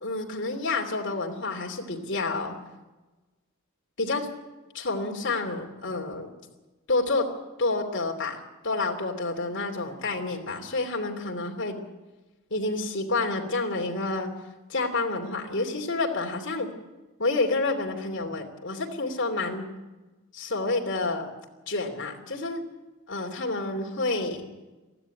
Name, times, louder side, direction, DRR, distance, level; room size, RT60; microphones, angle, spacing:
voice 1, 0.0-2.6 4.0-4.3 4.7-6.3 6.9-7.3 7.6-11.7 12.5-14.3 14.7-16.7 17.2-19.6 20.3-21.3 21.7-22.6 23.1-24.4, left 3 dB, 55° left, 2 dB, 3.0 m, -29 dB
22.5 x 14.5 x 9.2 m, 1.1 s
head